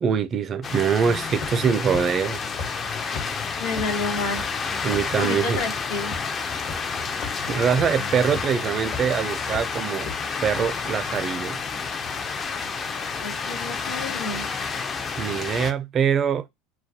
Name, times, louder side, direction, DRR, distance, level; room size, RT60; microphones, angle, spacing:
voice 1, 0.0-2.4 4.8-5.6 7.5-10.1 10.4-11.6 15.2-16.4, right 7 dB, 40° right, 0.3 m, -23 dB
sound 1, 0.6-15.7, left 5 dB, 30° left, 0.4 m, -30 dB
sound 2, 1.4-1.7 1.9-2.0 2.6-2.7 3.1-3.2 3.8-3.9 4.4-4.5 4.9-5.1 5.5-5.6 6.1-6.2 6.7-6.8 7.2-7.3 7.8-7.9 8.3-8.4 8.9-9.1 9.5-9.6 10.1-10.2 10.6-10.7, left 4 dB, 55° left, 1.1 m, -33 dB
voice 2, 3.0-4.4 5.2-6.1 13.2-14.5, left 3 dB, 80° left, 0.9 m, -30 dB
2.2 x 2.2 x 2.6 m
supercardioid pair, 100°, 0 cm